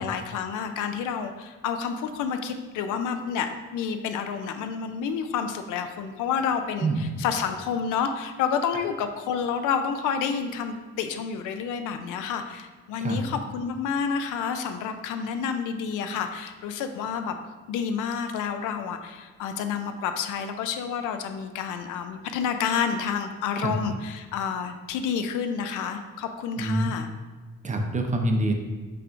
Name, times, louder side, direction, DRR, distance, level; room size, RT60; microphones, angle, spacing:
voice 1, 0.0-6.9 7.2-17.4 17.7-27.1, left 6 dB, 85° left, 7 dB, 0.5 m, -29 dB
voice 2, 6.8-7.1 13.0-13.2 23.6-23.7 26.6-26.9 27.6-28.5, right 2 dB, 25° right, 3 dB, 0.6 m, -25 dB
5.8 x 3.4 x 2.5 m, 1.3 s
cardioid pair, 90°, 30 cm